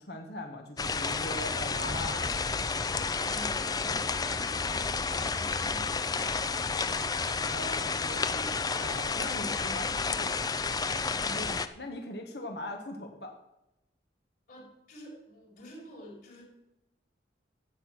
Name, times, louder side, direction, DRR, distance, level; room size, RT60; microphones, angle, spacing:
voice 1, 0.0-2.6 7.3-10.4 11.2-13.3, left 1 dB, 70° left, 3 dB, 1.6 m, -40 dB
sound 1, 0.8-11.7, left 4 dB, 20° left, 0.5 m, -31 dB
voice 2, 3.2-6.7 14.5-16.4, left 1 dB, 50° left, -6 dB, 4.5 m, -49 dB
13.0 x 8.6 x 6.0 m, 0.89 s
head